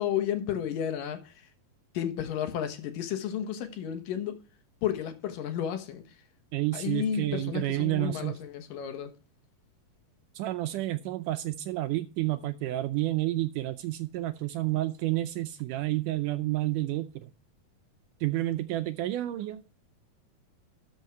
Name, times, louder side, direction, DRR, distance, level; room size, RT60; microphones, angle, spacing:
voice 1, 0.0-1.5 1.9-4.4 4.8-6.0 6.7-9.1, left 9 dB, 70° left, 2.9 m, -32 dB
voice 2, 6.5-8.4 10.4-17.3 18.2-19.6, right 16 dB, 80° right, 1.9 m, -30 dB
13.0 x 6.4 x 4.6 m
omnidirectional pair, 4.1 m